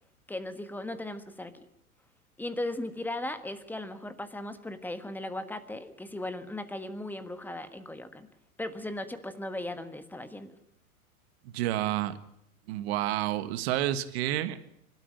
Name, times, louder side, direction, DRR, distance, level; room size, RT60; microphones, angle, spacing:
voice 1, 0.3-1.6 2.4-8.3 8.6-10.5, left 1 dB, 5° left, 10 dB, 1.5 m, -37 dB
voice 2, 11.5-12.2 12.7-14.6, right 13 dB, 45° right, 12 dB, 1.6 m, -29 dB
26.0 x 13.0 x 9.1 m, 0.78 s
figure-of-eight pair, 105°, 43 cm